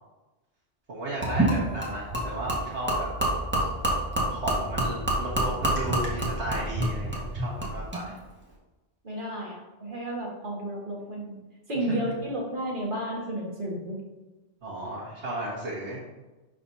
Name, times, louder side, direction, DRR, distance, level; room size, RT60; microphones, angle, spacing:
voice 1, 0.9-3.1 4.3-8.2 11.8-12.1 14.6-16.0, right 1 dB, 80° right, -9 dB, 1.8 m, -34 dB
Gurgling / Liquid, 1.2-8.0, right 1 dB, 10° right, 1.5 m, -28 dB
voice 2, 9.0-11.4 11.7-14.0, right 1 dB, 50° right, -3 dB, 1.7 m, -32 dB
11.5 x 4.3 x 2.7 m, 1.1 s
omnidirectional pair, 1.2 m